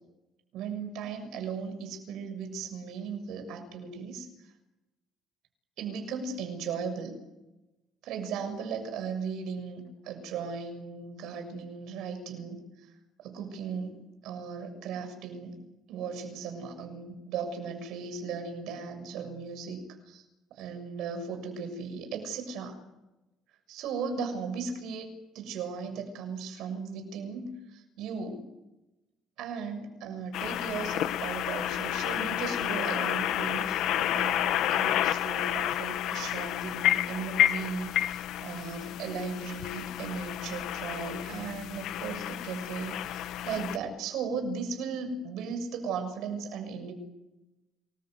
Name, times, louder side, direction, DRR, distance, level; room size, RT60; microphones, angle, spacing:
voice 1, 0.5-4.3 5.8-7.2 8.0-12.9 13.2-13.9 14.2-15.6 15.9-20.2 20.5-22.8 23.7-25.1 25.3-28.5 29.4-47.0, right 5 dB, 65° right, 7 dB, 6.8 m, -37 dB
sound 1, 30.3-43.8, left 12 dB, 60° left, 1.4 m, -30 dB
29.5 x 21.5 x 8.1 m, 0.99 s
cardioid pair, 180°, 0 cm